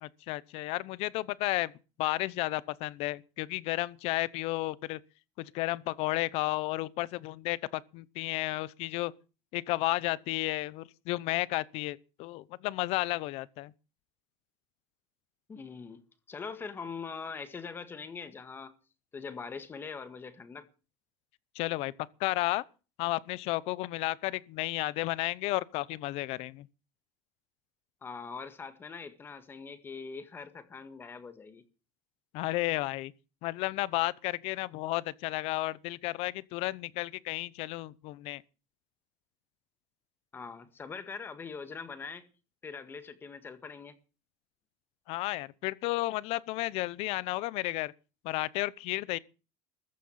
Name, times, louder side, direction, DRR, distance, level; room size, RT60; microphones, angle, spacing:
voice 1, 0.0-1.7 2.0-5.0 5.4-9.1 9.5-13.7 21.5-21.9 22.2-22.6 23.0-26.7 32.3-33.1 33.4-38.4 45.1-47.9 48.2-49.2, left 19 dB, 55° left, 0.8 m, -32 dB
voice 2, 15.5-16.0 16.3-18.7 19.1-20.7 28.0-31.6 40.3-42.3 42.6-44.0, left 5 dB, 20° left, 1.8 m, -42 dB
14.5 x 9.6 x 8.5 m
cardioid pair, 170°, 12 cm